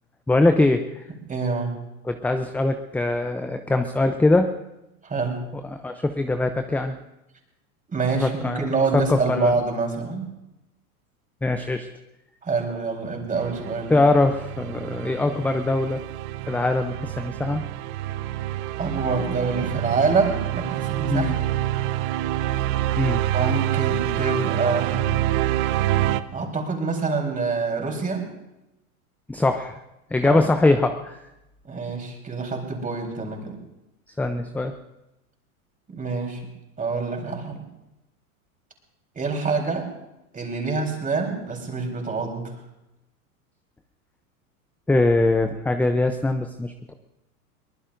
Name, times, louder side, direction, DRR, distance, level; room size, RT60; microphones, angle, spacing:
voice 1, 0.3-1.0 2.0-4.5 5.7-7.0 8.1-8.7 8.9-9.5 11.4-11.9 13.9-16.0 16.5-17.6 21.1-21.3 23.0-23.2 29.3-29.8 30.1-31.2 34.2-34.7 44.9-46.9, left 2 dB, 5° left, 7 dB, 0.5 m, -22 dB
voice 2, 1.3-1.8 5.0-5.4 7.9-10.3 12.4-13.9 18.8-21.5 23.3-25.1 26.3-28.2 30.2-30.4 31.7-33.6 35.9-36.4 36.8-37.6 39.1-39.9 40.3-42.5, right 4 dB, 20° right, 1 dB, 3.9 m, -26 dB
sound 1, 13.4-26.2, right 14 dB, 50° right, 0.9 m, -27 dB
23.0 x 19.5 x 2.6 m, 0.94 s
hypercardioid pair, 105°, 43 cm